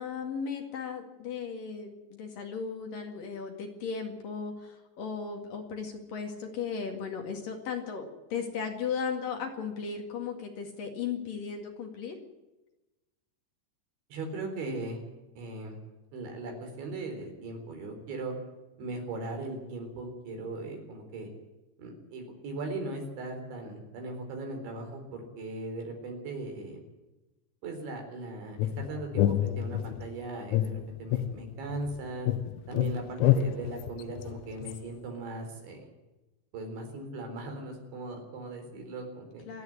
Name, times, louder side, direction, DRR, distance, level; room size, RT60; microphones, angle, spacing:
voice 1, 0.0-12.2 39.5-39.6, left 6 dB, 55° left, 3 dB, 3.5 m, -36 dB
voice 2, 14.1-15.0 15.4-15.8 16.1-18.3 18.8-21.3 21.8-26.8 27.6-32.3 32.7-35.9 36.5-39.5, right 2 dB, 80° right, 3 dB, 6.4 m, -38 dB
sound 1, 28.6-30.1 30.5-32.0 32.3-34.8, left 12 dB, 85° left, 3.4 m, -28 dB
27.5 x 9.8 x 9.8 m, 1.0 s
omnidirectional pair, 5.2 m